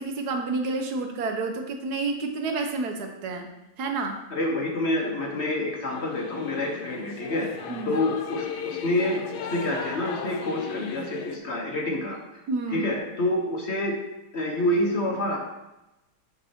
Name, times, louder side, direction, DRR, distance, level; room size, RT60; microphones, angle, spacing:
voice 1, 0.0-3.5 3.8-4.2 7.7-8.0 12.5-12.9, right 3 dB, 75° right, 4 dB, 1.3 m, -29 dB
voice 2, 4.3-7.5 7.9-12.4 12.7-14.0 14.3-15.4, left 1 dB, 50° left, 0 dB, 1.0 m, -27 dB
Singing / Musical instrument, 5.9-11.4, left 6 dB, 85° left, 1.3 m, -36 dB
8.0 x 5.2 x 2.8 m, 0.97 s
omnidirectional pair, 1.7 m